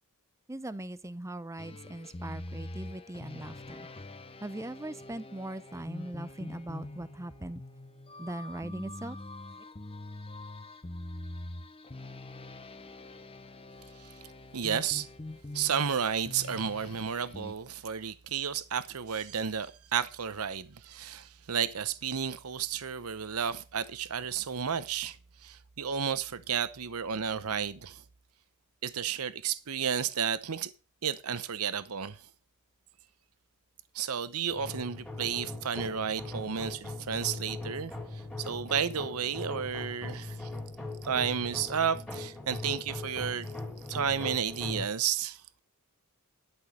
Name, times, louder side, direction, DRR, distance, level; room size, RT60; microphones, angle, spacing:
voice 1, 0.5-3.9 4.4-7.6 8.2-9.2 9.6-9.7, right 1 dB, 15° right, 0.6 m, -40 dB
sound 1, 1.6-17.5, left 2 dB, 25° left, 0.8 m, -44 dB
voice 2, 14.5-15.1 15.5-25.2 25.4-28.0 28.8-30.7 31.0-32.2 33.9-40.5 41.0-43.5 43.9-45.4, right 7 dB, 75° right, 0.8 m, -32 dB
sound 2, 34.5-44.9, left 2 dB, 5° left, 2.9 m, -40 dB
11.5 x 6.2 x 6.0 m
head